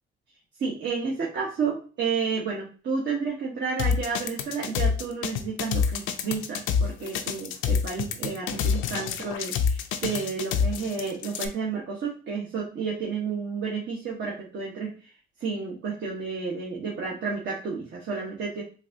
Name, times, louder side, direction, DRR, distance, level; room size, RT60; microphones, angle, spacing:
voice 1, 0.6-15.1 15.4-18.6, right 5 dB, 65° right, -4 dB, 1.1 m, -31 dB
sound 1, 3.8-11.5, left 6 dB, 85° left, 0.5 m, -27 dB
3.9 x 2.6 x 2.6 m, 0.38 s
cardioid pair, 90°, 20 cm